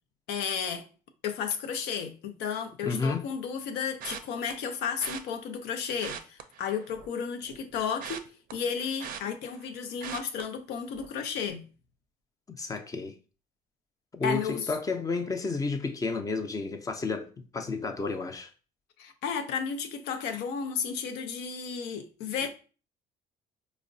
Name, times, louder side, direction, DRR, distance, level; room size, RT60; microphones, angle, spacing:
voice 1, 0.3-0.9 1.2-8.3 8.5-11.6 14.2-14.7 19.0-22.5, left 6 dB, 90° left, 0.5 m, -33 dB
voice 2, 2.8-3.2 12.5-13.2 14.1-18.5, left 3 dB, 20° left, 0.5 m, -31 dB
sound 1, 4.0-4.5 5.0-5.2 5.9-7.2 7.5-9.7 10.0-10.4 10.9-11.2 11.4-11.5, right 7 dB, 55° right, 0.4 m, -41 dB
4.4 x 2.0 x 2.6 m
cardioid pair, 110°, 17 cm